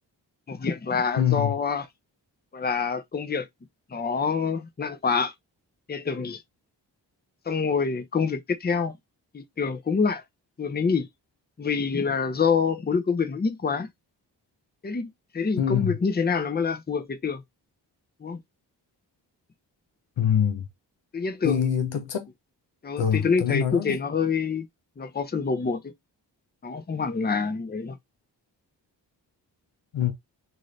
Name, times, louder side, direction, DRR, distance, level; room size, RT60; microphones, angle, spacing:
voice 1, 0.5-1.9 2.5-3.5 3.9-5.3 5.9-6.4 7.5-9.0 9.3-10.2 10.6-11.1 11.6-13.9 14.8-17.4 18.2-18.4 21.1-22.0 22.8-24.7 25.0-25.9 26.6-28.0, left 5 dB, 20° left, 0.7 m, -26 dB
voice 2, 1.2-1.5 15.6-15.9 20.2-20.7 21.4-22.3 23.0-24.0 29.9-30.1, left 9 dB, 75° left, 0.8 m, -24 dB
2.7 x 2.5 x 3.2 m
supercardioid pair, 40°, 44 cm